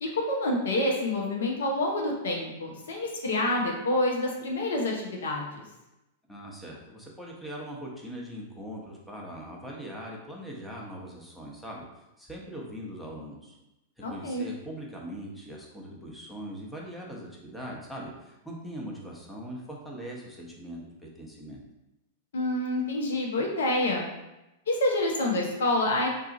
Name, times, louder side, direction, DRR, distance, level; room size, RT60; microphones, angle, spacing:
voice 1, 0.0-5.6 14.0-14.5 22.3-24.1 24.7-26.1, left 1 dB, 75° left, 0 dB, 0.6 m, -27 dB
voice 2, 6.3-11.9 12.2-13.6 14.1-21.6, equal, ahead, -3 dB, 0.8 m, -41 dB
2.5 x 2.4 x 3.9 m, 0.95 s
hypercardioid pair, 100°, 0 cm